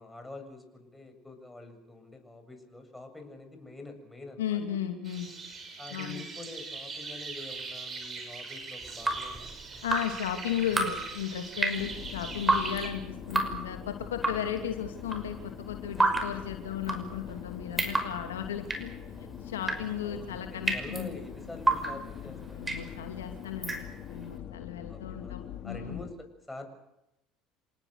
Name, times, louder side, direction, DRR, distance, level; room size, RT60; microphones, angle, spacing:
voice 1, 0.0-4.6 5.8-9.5 20.0-22.9 24.9-25.3 25.6-26.7, left 2 dB, 10° left, 6 dB, 7.2 m, -46 dB
voice 2, 4.4-5.3 5.9-6.3 9.8-18.9 19.4-21.2 22.2-26.0, left 9 dB, 90° left, 6 dB, 2.6 m, -35 dB
sound 1, 5.0-12.9, right 4 dB, 35° right, 6.9 m, -41 dB
Drip, 8.8-24.3, right 2 dB, 20° right, 5.7 m, -32 dB
sound 2, 11.8-26.1, left 10 dB, 55° left, 3.2 m, -44 dB
28.0 x 19.5 x 6.7 m, 0.87 s
hypercardioid pair, 75°, 0 cm